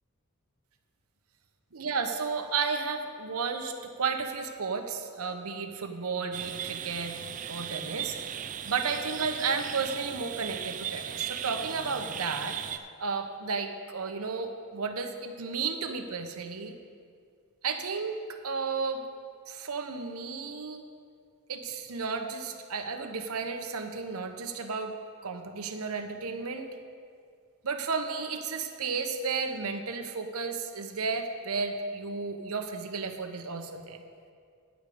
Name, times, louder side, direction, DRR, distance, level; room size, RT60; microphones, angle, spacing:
voice 1, 1.7-7.1 7.5-8.2 8.6-12.6 13.0-16.7 17.6-19.0 19.5-20.8 21.5-25.0 25.2-26.7 27.6-34.0, right 5 dB, 80° right, 6 dB, 0.9 m, -33 dB
sound 1, 6.3-12.8, right 9 dB, 35° right, 0.3 m, -37 dB
10.0 x 5.1 x 8.3 m, 2.2 s
head